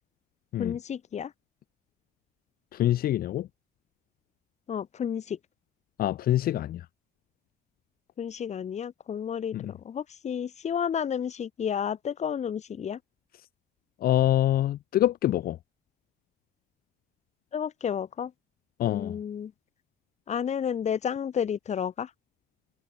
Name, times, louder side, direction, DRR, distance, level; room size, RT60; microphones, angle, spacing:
voice 1, 0.6-1.3 4.7-5.4 8.2-13.0 17.5-18.3 18.9-19.5 20.3-22.1, left 8 dB, 45° left, 2.2 m, -31 dB
voice 2, 2.7-3.5 6.0-6.9 9.5-9.7 14.0-15.6 18.8-19.2, left 13 dB, 60° left, 1.2 m, -25 dB
cardioid pair, 110°, 17 cm